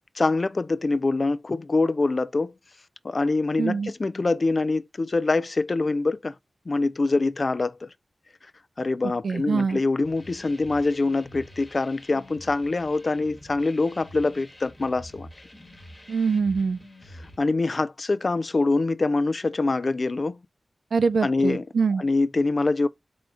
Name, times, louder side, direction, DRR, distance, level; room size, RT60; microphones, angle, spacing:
voice 1, 0.2-2.5 3.0-6.3 6.7-7.9 8.8-15.3 17.4-20.4 21.2-21.6 22.0-22.9, left 3 dB, 55° left, 0.4 m, -24 dB
voice 2, 3.6-3.9 9.2-9.8 16.1-16.8 20.9-22.0, right 5 dB, 80° right, 0.4 m, -24 dB
sound 1, 10.0-17.4, left 1 dB, 35° left, 1.3 m, -47 dB
3.8 x 3.4 x 3.7 m
cardioid pair, 45°, 0 cm